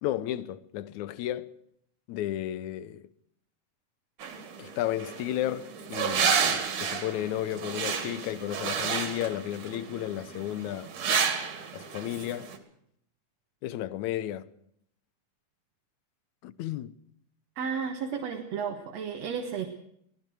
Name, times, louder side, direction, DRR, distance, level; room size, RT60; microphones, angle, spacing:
voice 1, 0.0-1.5 2.1-3.1 4.6-10.9 11.7-12.5 13.6-14.5 16.4-16.9, left 13 dB, 70° left, 2.2 m, -33 dB
sound 1, 4.2-12.6, right 6 dB, 75° right, 3.8 m, -31 dB
voice 2, 17.6-19.7, right 6 dB, 60° right, 2.6 m, -33 dB
24.0 x 17.5 x 6.3 m
omnidirectional pair, 3.7 m